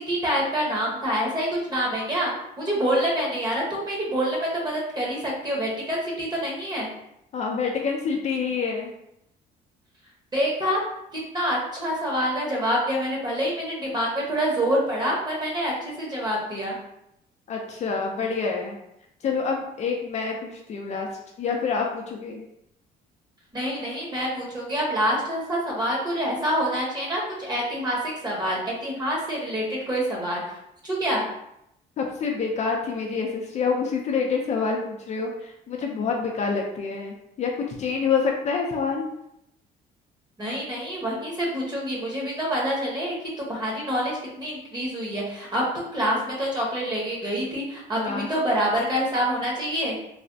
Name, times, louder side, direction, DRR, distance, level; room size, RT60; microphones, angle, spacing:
voice 1, 0.0-2.3 2.6-6.9 10.3-10.8 11.1-16.8 23.5-30.4 30.8-31.2 40.4-50.0, equal, 25° right, -3 dB, 1.0 m, -26 dB
voice 2, 7.3-8.9 17.5-18.8 19.2-21.1 21.4-22.4 32.0-39.1 48.0-48.3, left 5 dB, 45° left, 1 dB, 0.4 m, -27 dB
3.2 x 2.0 x 2.6 m, 0.80 s
cardioid pair, 110°, 17 cm